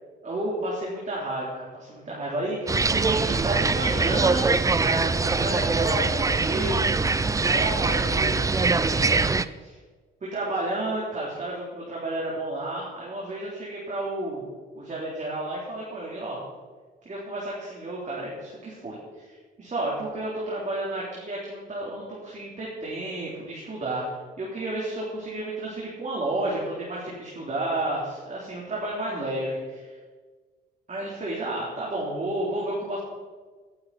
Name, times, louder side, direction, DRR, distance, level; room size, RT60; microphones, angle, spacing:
voice 1, 0.2-4.5 4.8-6.8 7.4-9.2 9.6-9.8 10.2-14.4 14.8-16.4 17.1-19.3 19.6-29.9 30.9-33.0, right 1 dB, 40° right, -6 dB, 3.8 m, -31 dB
sound 1, 2.7-9.5, right 3 dB, 15° right, 0.4 m, -23 dB
18.5 x 8.5 x 4.3 m, 1.4 s
cardioid pair, 90°, 20 cm